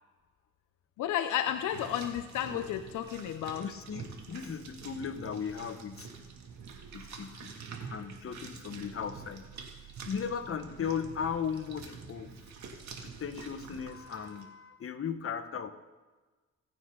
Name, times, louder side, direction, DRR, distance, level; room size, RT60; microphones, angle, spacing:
voice 1, 1.0-3.7, left 11 dB, 85° left, 9 dB, 0.8 m, -32 dB
sound 1, 1.5-14.4, right 5 dB, 65° right, 2.6 m, -47 dB
sound 2, 2.3-13.9, right 9 dB, 80° right, 2.7 m, -57 dB
voice 2, 3.6-6.1 6.9-7.5 7.9-9.5 9.8-12.3 13.0-15.7, left 7 dB, 45° left, 8 dB, 1.4 m, -37 dB
26.5 x 9.1 x 4.0 m, 1.3 s
cardioid pair, 90°, 30 cm